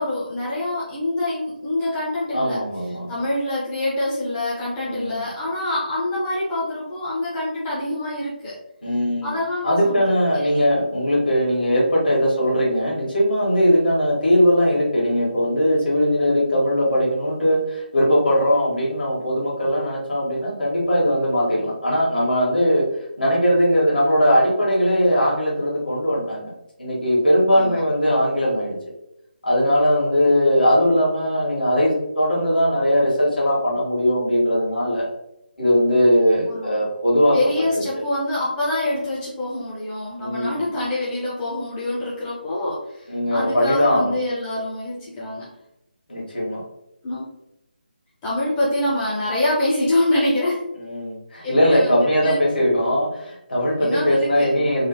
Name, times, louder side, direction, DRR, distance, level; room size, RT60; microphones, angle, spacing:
voice 1, 0.0-2.6 3.1-8.6 9.2-10.1 10.3-10.6 27.5-27.8 36.5-36.8 37.3-45.5 47.0-47.3 48.2-50.8 51.4-52.4 53.8-54.7, left 1 dB, 10° left, -8 dB, 0.4 m, -25 dB
voice 2, 2.3-3.1 4.8-5.2 8.8-9.3 9.6-22.8 23.2-26.5 26.8-28.8 29.4-35.1 35.6-37.4 40.2-40.8 43.1-44.1 46.1-46.6 50.8-54.9, equal, 60° left, -5 dB, 1.3 m, -20 dB
3.1 x 2.0 x 2.7 m, 0.85 s
figure-of-eight pair, 150°, 6 cm